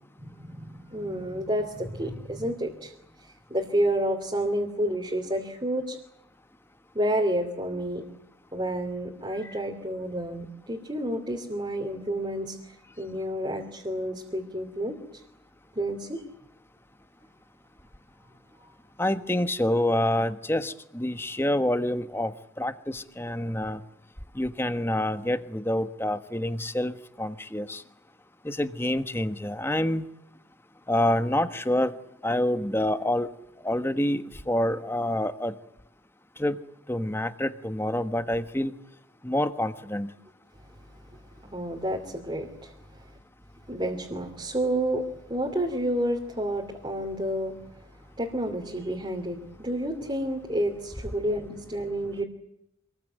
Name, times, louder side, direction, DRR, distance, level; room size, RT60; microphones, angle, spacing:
voice 1, 0.2-2.9 3.5-6.0 6.9-8.0 8.5-15.2 15.7-16.2 18.6-18.7 41.5-42.7 43.7-47.6 48.2-52.2, right 1 dB, 25° right, 0 dB, 2.9 m, -30 dB
voice 2, 19.0-22.3 22.6-23.8 24.3-27.8 28.4-30.1 30.9-31.9 32.2-33.3 33.6-35.5 36.4-36.6 36.9-38.7 39.2-40.1, left 1 dB, 10° left, 10 dB, 1.2 m, -27 dB
26.5 x 21.0 x 9.3 m, 0.82 s
head